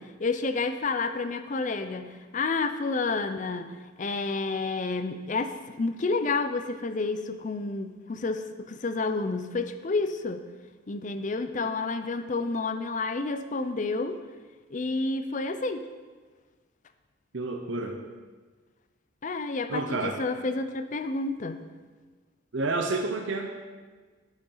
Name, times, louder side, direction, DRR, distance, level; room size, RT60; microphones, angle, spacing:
voice 1, 0.0-10.4 10.9-14.2 14.7-15.8 19.2-21.6, left 3 dB, 40° left, 10 dB, 0.5 m, -30 dB
voice 2, 17.3-18.0 19.7-20.2 22.5-23.5, right 3 dB, 65° right, 2 dB, 0.7 m, -29 dB
10.5 x 6.6 x 3.9 m, 1.4 s
head